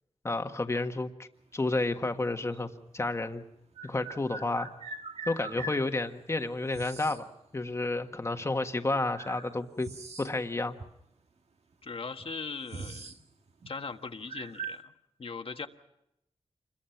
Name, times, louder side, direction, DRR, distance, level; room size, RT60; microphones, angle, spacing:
voice 1, 0.2-3.4 3.8-4.7 5.3-7.2 7.5-9.9 10.2-10.8, left 2 dB, 25° left, 6 dB, 1.5 m, -31 dB
sound 1, 2.5-2.6 3.7-5.9 6.7-7.2 8.4-8.5 9.1-10.5 10.8-10.9 11.7-11.8 12.1-13.2 13.5-13.7 14.3-14.8, right 3 dB, 70° right, 1.8 m, -41 dB
voice 2, 11.8-13.1 13.7-14.9 15.2-15.7, left 4 dB, 55° left, 6 dB, 1.4 m, -39 dB
28.0 x 22.5 x 5.8 m, 0.83 s
wide cardioid pair, 135°, 11 cm